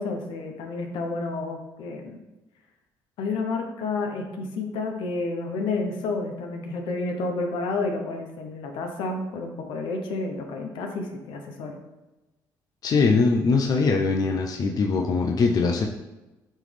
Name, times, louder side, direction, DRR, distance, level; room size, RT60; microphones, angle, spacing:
voice 1, 0.0-2.2 3.2-11.8, left 3 dB, 75° left, 3 dB, 1.0 m, -30 dB
voice 2, 12.8-15.9, left 4 dB, 50° left, 2 dB, 0.6 m, -22 dB
8.9 x 3.2 x 3.4 m, 1.1 s
supercardioid pair, 75°, 8 cm